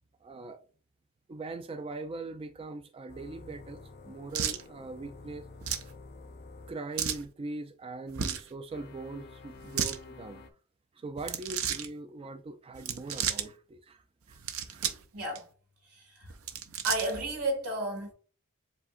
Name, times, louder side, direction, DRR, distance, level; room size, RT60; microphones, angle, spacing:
voice 1, 0.2-0.6 1.3-5.5 6.7-10.4 11.0-14.4 14.7-14.9, right 3 dB, 25° right, 0.3 m, -41 dB
sound 1, 3.1-6.8 8.7-10.5, left 3 dB, 45° left, 0.5 m, -49 dB
sound 2, 4.3-4.6 5.6-5.9 7.0-7.2 8.1-8.5 9.6-10.0 11.2-11.9 12.7-13.5 14.3-15.0 15.3-15.4 16.3-17.2, right 8 dB, 65° right, 0.6 m, -33 dB
voice 2, 15.1-15.5 15.9-16.3 16.8-18.1, right 1 dB, 85° right, 1.9 m, -32 dB
7.4 x 2.8 x 2.4 m
head